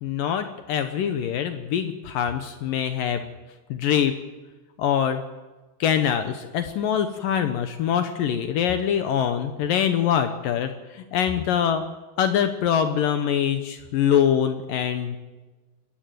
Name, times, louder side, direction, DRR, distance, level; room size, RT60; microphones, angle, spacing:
voice 1, 0.0-3.3 3.7-4.1 4.8-5.2 5.8-11.8 12.2-15.2, left 9 dB, 70° left, 8 dB, 2.3 m, -24 dB
23.0 x 14.5 x 9.2 m, 1.2 s
omnidirectional pair, 4.8 m